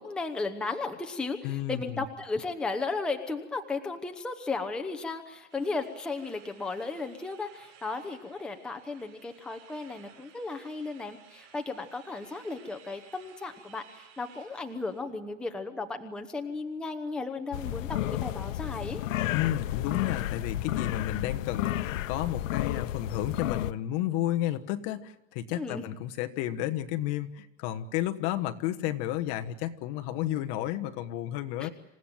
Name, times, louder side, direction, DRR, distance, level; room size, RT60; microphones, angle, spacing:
voice 1, 0.0-19.0 25.5-25.9 31.6-31.7, left 3 dB, ahead, 4 dB, 1.0 m, -35 dB
voice 2, 1.4-2.0 19.3-31.7, left 13 dB, 40° left, 7 dB, 1.3 m, -32 dB
sound 1, 5.5-15.0, right 8 dB, 60° right, 7.6 m, -57 dB
sound 2, 17.5-23.7, left 13 dB, 85° left, 0.9 m, -32 dB
27.5 x 16.5 x 9.1 m, 1.0 s
supercardioid pair, 165°, 38 cm